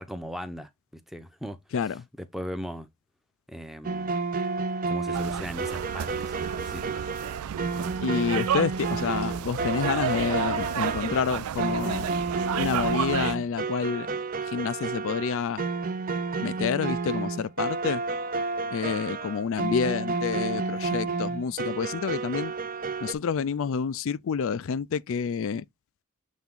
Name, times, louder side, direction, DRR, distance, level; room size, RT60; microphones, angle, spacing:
voice 1, 0.0-2.9 3.5-4.1 4.9-7.1, equal, ahead, 0.7 m, -39 dB
voice 2, 1.7-2.0 8.0-12.1 12.6-14.1 14.5-15.7 16.4-18.0 18.7-22.5 23.0-25.6, left 6 dB, 65° left, 0.4 m, -28 dB
sound 1, 3.8-23.1, right 4 dB, 40° right, 0.6 m, -31 dB
sound 2, 5.1-13.4, right 9 dB, 85° right, 0.4 m, -32 dB
7.3 x 3.5 x 3.7 m
head